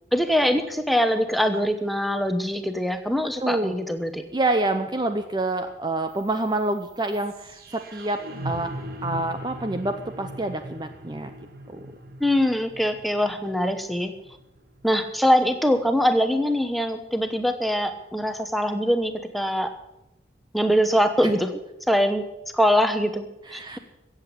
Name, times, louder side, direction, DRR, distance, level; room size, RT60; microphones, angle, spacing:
voice 1, 0.1-4.2 12.2-14.1 14.8-19.7 20.5-21.5 21.9-22.3 22.5-23.8, equal, ahead, 7 dB, 1.0 m, -23 dB
voice 2, 3.4-3.8 4.3-8.8 9.0-11.3 11.7-11.8 23.5-23.8, right 2 dB, 25° right, 7 dB, 0.7 m, -27 dB
sound 1, 6.1-16.1, right 1 dB, 55° right, 1.6 m, -40 dB
15.0 x 8.2 x 8.4 m, 0.91 s
head